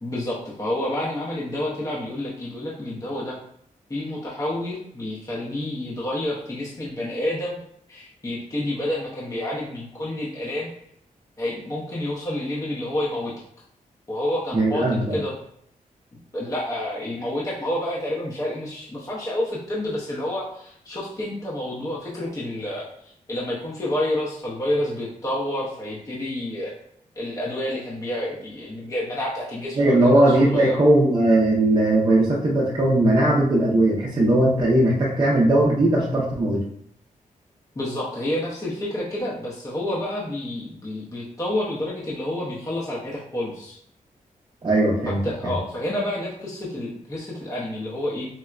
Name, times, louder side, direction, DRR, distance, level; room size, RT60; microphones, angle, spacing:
voice 1, 0.0-3.4 3.9-7.6 7.9-10.7 11.4-13.3 14.1-14.9 15.1-15.3 16.3-22.9 23.3-26.7 27.2-30.7 37.8-43.8 45.1-48.3, left 1 dB, 25° left, -5 dB, 0.6 m, -29 dB
voice 2, 14.5-15.2 29.7-36.6 44.6-45.6, right 1 dB, 30° right, -5 dB, 0.6 m, -19 dB
4.3 x 2.0 x 2.4 m, 0.69 s
wide cardioid pair, 120°, 14 cm